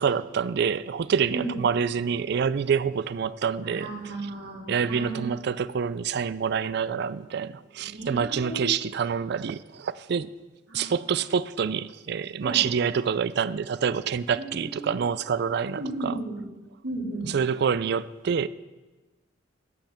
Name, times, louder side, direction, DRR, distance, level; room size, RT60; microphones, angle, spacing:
voice 1, 0.0-3.9 4.7-10.3 10.7-16.2 17.2-18.5, right 6 dB, 60° right, 0.4 m, -27 dB
voice 2, 3.6-5.2 7.8-8.8 10.7-10.9 12.4-12.6 14.4-14.9 15.7-16.4 16.8-17.3, right 2 dB, 75° right, 3.4 m, -34 dB
13.0 x 5.7 x 7.4 m
head